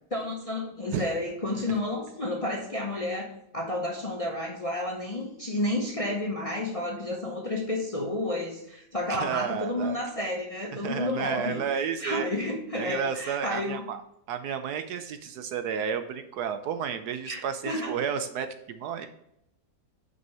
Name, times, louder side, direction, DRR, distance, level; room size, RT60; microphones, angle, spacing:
voice 1, 0.1-11.6 12.0-13.8 17.3-18.0, left 1 dB, 30° left, 0 dB, 0.7 m, -31 dB
voice 2, 9.1-10.0 10.7-12.3 12.7-19.1, right 7 dB, 70° right, 9 dB, 1.1 m, -32 dB
6.2 x 5.4 x 5.4 m, 0.78 s
omnidirectional pair, 1.9 m